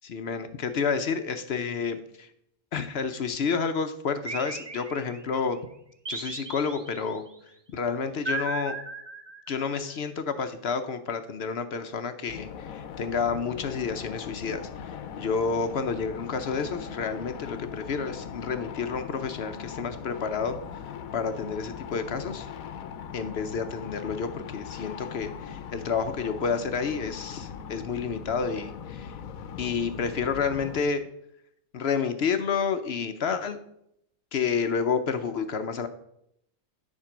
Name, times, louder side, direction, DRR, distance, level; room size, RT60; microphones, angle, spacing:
voice 1, 0.0-2.3 2.7-5.6 6.1-7.2 7.7-8.8 9.5-20.6 21.1-22.5 23.1-29.1 29.6-31.0 31.7-33.6 34.3-35.9, left 5 dB, 55° left, 9 dB, 0.7 m, -30 dB
sound 1, 4.3-5.4 6.1-7.2 8.3-9.7, right 3 dB, 35° right, 0.4 m, -36 dB
sound 2, 12.3-30.8, left 8 dB, 75° left, 1.1 m, -40 dB
10.0 x 4.4 x 6.0 m, 0.76 s
omnidirectional pair, 1.5 m